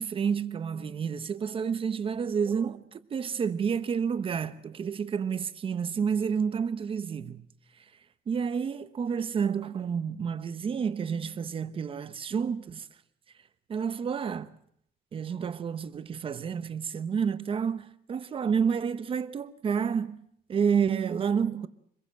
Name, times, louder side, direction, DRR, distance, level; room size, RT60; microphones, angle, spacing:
voice 1, 0.0-7.4 8.3-12.9 13.7-14.5 15.1-20.2 20.5-21.7, right 6 dB, 30° right, 1.0 m, -29 dB
25.5 x 21.5 x 7.6 m
cardioid pair, 175°, 17 cm